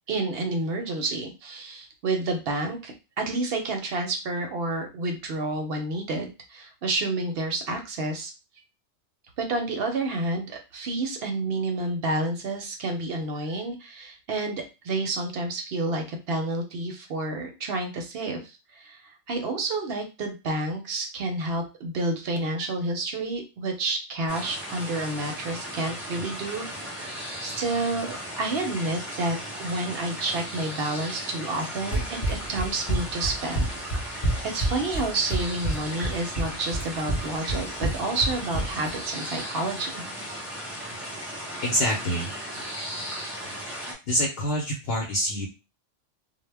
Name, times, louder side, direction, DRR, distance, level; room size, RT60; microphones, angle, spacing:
voice 1, 0.1-8.3 9.4-18.4 18.7-33.7 34.0-40.0, right 2 dB, 65° right, 4 dB, 0.7 m, -30 dB
sound 1, 24.3-44.0, equal, ahead, 1.0 m, -36 dB
Run, 31.9-38.9, right 1 dB, 30° left, 0.7 m, -28 dB
voice 2, 41.6-42.3 44.0-45.5, equal, 60° left, -1 dB, 0.8 m, -26 dB
2.1 x 2.0 x 3.3 m, 0.29 s
omnidirectional pair, 1.2 m